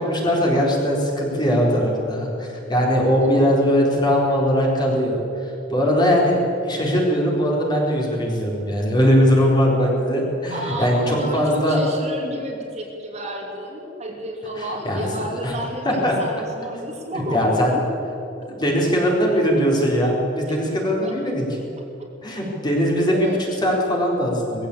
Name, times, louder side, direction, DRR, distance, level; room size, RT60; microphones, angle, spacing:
voice 1, 0.0-11.8 14.6-15.1 15.4-15.5 15.8-16.1 17.1-17.8 18.5-21.4 22.2-23.4 23.6-24.7, equal, 20° left, -2 dB, 4.1 m, -20 dB
voice 2, 3.2-3.6 10.5-17.8 20.5-20.6 21.0-21.2 21.8-21.9 23.1-23.4, equal, 35° right, 0 dB, 2.9 m, -31 dB
20.0 x 15.5 x 8.6 m, 2.9 s
head